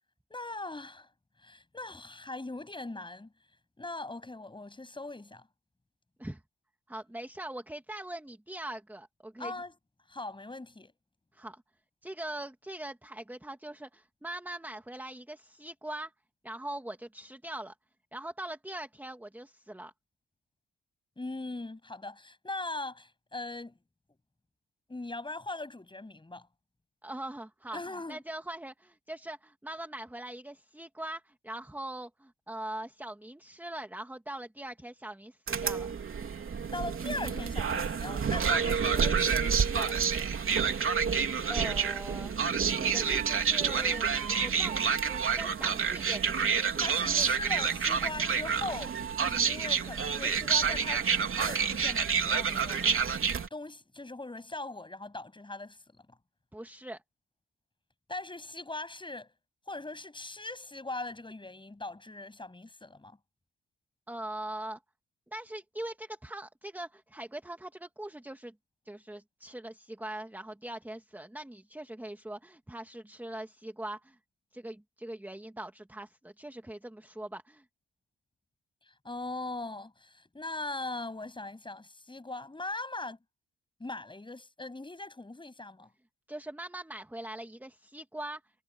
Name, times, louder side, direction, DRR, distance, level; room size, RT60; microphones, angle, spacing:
voice 1, 0.3-1.1 1.4-3.3 3.8-5.5 9.4-9.7 10.1-10.9 21.2-23.7 24.9-26.5 27.7-28.2 36.7-40.4 46.8-52.8 53.5-55.8 58.1-59.3 59.7-63.2 78.9-83.2 83.8-85.9, left 2 dB, 15° left, 7.8 m, -40 dB
voice 2, 6.9-9.5 11.3-11.6 12.0-16.1 16.4-17.7 18.1-19.9 27.0-27.8 28.1-35.9 41.5-42.3 42.8-44.1 44.4-47.3 56.5-57.0 64.1-64.8 65.3-68.5 68.9-74.2 74.5-77.6 86.3-88.4, right 1 dB, 5° right, 2.4 m, -41 dB
sound 1, 35.5-53.5, right 6 dB, 45° right, 3.4 m, -28 dB
cardioid pair, 90°, 30 cm